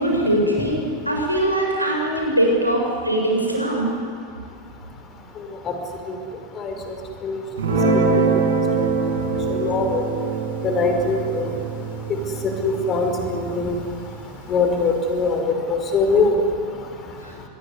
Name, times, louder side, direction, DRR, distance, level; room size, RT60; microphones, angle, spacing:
voice 1, 0.0-3.9 17.2-17.3, right 1 dB, 90° right, -1 dB, 7.4 m, -21 dB
Guitar, 7.6-14.2, right 4 dB, 65° right, 7.8 m, -24 dB
voice 2, 9.5-10.0 10.6-11.5 12.6-13.8 14.5-15.4 15.7-16.3, left 4 dB, 30° left, 5 dB, 5.0 m, -21 dB
26.0 x 22.0 x 9.8 m, 2.5 s
figure-of-eight pair, 90°, 0 cm